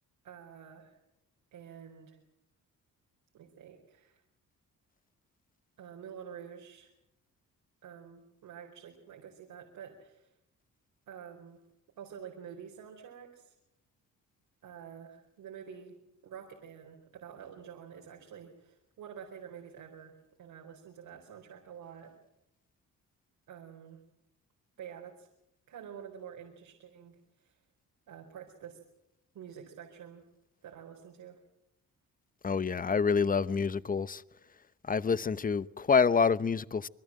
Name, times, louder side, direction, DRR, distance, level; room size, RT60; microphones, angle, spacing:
voice 1, 0.2-1.0 1.5-2.2 3.3-4.2 5.8-6.9 7.8-10.3 11.1-11.6 12.0-13.5 14.6-15.9 16.2-22.1 23.5-24.0 24.8-25.3 25.7-27.6 28.1-28.8 29.3-30.2 30.6-31.4, right 8 dB, 80° right, 4.4 m, -48 dB
voice 2, 32.4-34.2 34.8-36.9, left 5 dB, 25° left, 0.9 m, -27 dB
27.0 x 21.5 x 7.6 m
cardioid pair, 100°, 32 cm